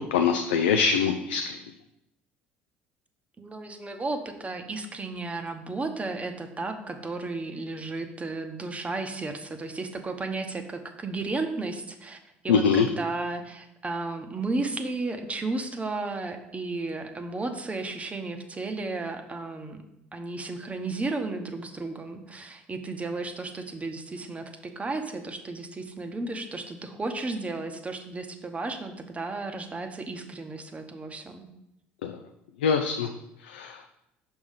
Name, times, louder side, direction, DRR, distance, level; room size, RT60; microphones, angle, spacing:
voice 1, 0.1-1.6 12.5-12.9 32.0-32.1 32.6-33.1 33.5-33.9, left 6 dB, 80° left, 6 dB, 0.4 m, -23 dB
voice 2, 3.4-12.2 12.4-19.8 20.1-31.5, right 3 dB, 25° right, 6 dB, 0.8 m, -33 dB
6.0 x 3.6 x 5.6 m, 0.86 s
hypercardioid pair, 60°, 6 cm